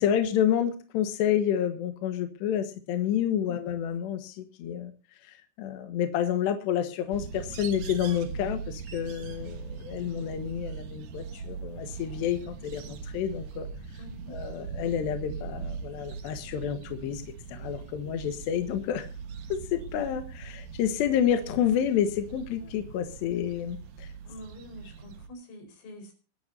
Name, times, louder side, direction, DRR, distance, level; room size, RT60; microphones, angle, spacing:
voice 1, 0.0-4.9 5.2-13.7 14.3-17.2 17.5-19.1 19.5-24.1, left 9 dB, 70° left, 8 dB, 3.2 m, -29 dB
sound 1, 7.1-25.3, right 5 dB, 80° right, 1.6 m, -41 dB
voice 2, 14.0-14.4 24.2-26.1, equal, 90° left, 5 dB, 7.3 m, -46 dB
24.5 x 10.5 x 2.7 m, 0.33 s
omnidirectional pair, 5.6 m